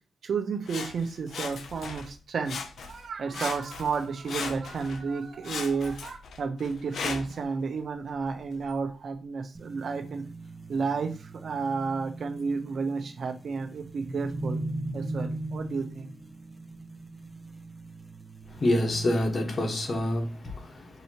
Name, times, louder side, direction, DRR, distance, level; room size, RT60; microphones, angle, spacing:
voice 1, 0.2-10.2 10.7-14.6 14.9-16.1, right 5 dB, 65° right, 0.8 m, -32 dB
Sawing, 0.7-2.1 2.4-3.1 3.3-5.0 5.4-7.4 8.1-8.2, left 5 dB, 75° left, 0.5 m, -38 dB
sound 1, 9.5-19.1, right 2 dB, 5° right, 1.0 m, -39 dB
voice 2, 18.6-20.9, left 1 dB, 45° left, 1.3 m, -27 dB
6.7 x 2.8 x 2.9 m
cardioid pair, 65°, 0 cm